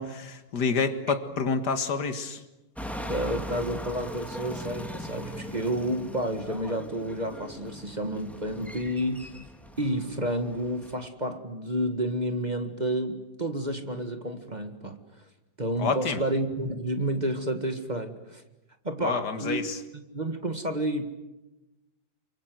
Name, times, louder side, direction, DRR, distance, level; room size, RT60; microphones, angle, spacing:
voice 1, 0.0-2.4 15.8-16.2 19.0-19.8, left 5 dB, 65° left, 9 dB, 2.3 m, -28 dB
sound 1, 2.8-11.1, equal, ahead, 2.3 m, -39 dB
voice 2, 3.1-9.4 9.8-15.0 15.6-18.4 18.8-19.6 20.1-21.1, right 1 dB, 25° right, 7 dB, 1.9 m, -30 dB
29.0 x 24.5 x 7.8 m, 1.0 s
omnidirectional pair, 1.9 m